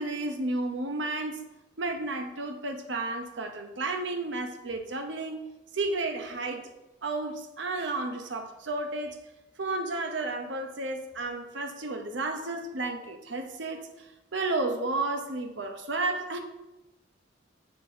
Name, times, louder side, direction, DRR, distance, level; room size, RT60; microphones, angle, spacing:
voice 1, 0.0-1.4 1.8-5.4 5.7-6.7 7.0-9.2 9.6-14.1 14.3-16.4, right 2 dB, 75° right, 6 dB, 0.9 m, -32 dB
6.8 x 4.0 x 5.4 m, 1.0 s
head